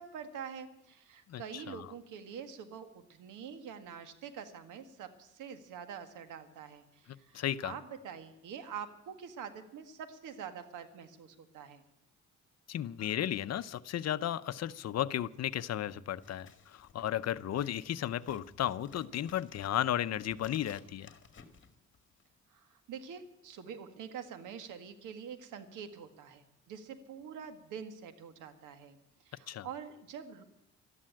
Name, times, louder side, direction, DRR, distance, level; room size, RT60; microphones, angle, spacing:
voice 1, 0.0-11.8 22.5-29.0 29.3-30.4, right 7 dB, 85° right, 10 dB, 1.8 m, -46 dB
voice 2, 1.3-1.9 7.3-7.7 12.7-21.1 29.5-29.7, left 11 dB, 60° left, 14 dB, 0.8 m, -34 dB
Scissors, 16.1-22.4, left 6 dB, 40° left, 2.1 m, -59 dB
13.5 x 11.0 x 8.9 m, 0.88 s
cardioid pair, 90°, 30 cm